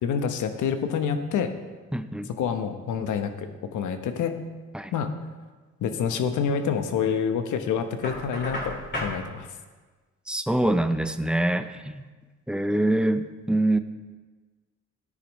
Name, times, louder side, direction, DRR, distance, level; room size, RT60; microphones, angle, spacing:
voice 1, 0.0-1.5 2.3-4.4 4.9-5.1 5.8-9.5, left 7 dB, 80° left, 8 dB, 1.0 m, -27 dB
voice 2, 1.9-2.3 4.7-4.9 10.3-12.0 12.5-13.8, right 1 dB, 5° right, 9 dB, 0.5 m, -24 dB
Knock, 8.0-9.2, left 1 dB, 35° left, 3.2 m, -32 dB
13.5 x 9.7 x 3.1 m, 1.4 s
cardioid pair, 90°, 30 cm